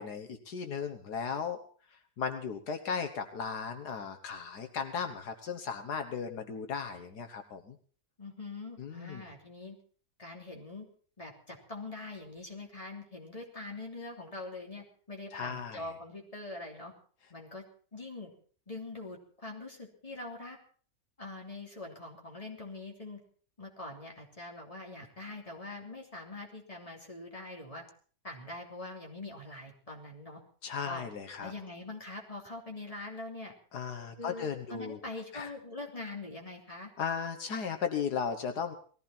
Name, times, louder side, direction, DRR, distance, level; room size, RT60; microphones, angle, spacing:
voice 1, 0.0-1.6 2.2-7.8 8.8-9.2 15.3-15.8 30.6-31.5 33.7-35.0 35.3-35.5 37.0-38.7, left 6 dB, 75° left, 7 dB, 1.8 m, -36 dB
voice 2, 8.2-9.8 10.2-10.9 11.2-16.9 17.3-17.6 17.9-18.3 18.7-20.6 21.2-23.2 23.6-27.8 28.2-30.4 30.8-31.1 31.4-33.5 34.2-36.9, left 2 dB, 20° left, 0 dB, 3.2 m, -43 dB
19.5 x 15.0 x 4.4 m, 0.43 s
omnidirectional pair, 1.7 m